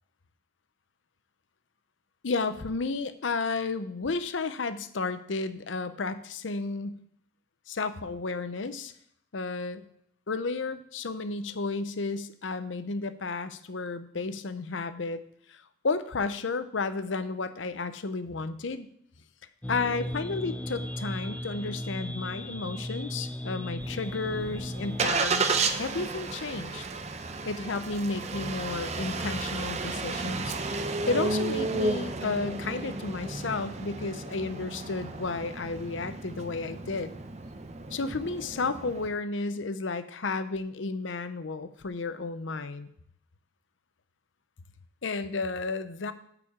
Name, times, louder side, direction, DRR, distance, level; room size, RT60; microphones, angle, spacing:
voice 1, 2.2-7.0 7.7-8.9 9.3-9.8 10.3-15.2 15.5-18.9 19.7-26.9 27.4-37.1 37.9-42.9 45.0-46.1, left 3 dB, 85° left, 12 dB, 0.7 m, -32 dB
sound 1, 19.6-25.1, equal, 5° left, 0.3 m, -36 dB
Engine starting, 23.8-39.1, right 3 dB, 35° right, 0.6 m, -33 dB
8.5 x 5.0 x 7.2 m, 0.69 s
head